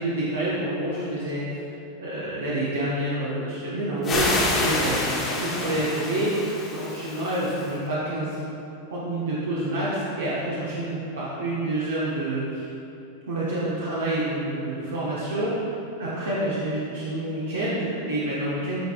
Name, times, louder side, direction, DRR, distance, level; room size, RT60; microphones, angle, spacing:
voice 1, 0.0-1.4 2.0-5.0 5.4-6.3 6.7-8.4 8.9-12.6 13.3-15.6 16.0-18.8, right 1 dB, 65° right, -8 dB, 0.9 m, -28 dB
sound 1, 4.0-7.7, left 2 dB, 25° left, 1.0 m, -28 dB
9.1 x 4.9 x 2.4 m, 2.9 s
figure-of-eight pair, 90°, 0 cm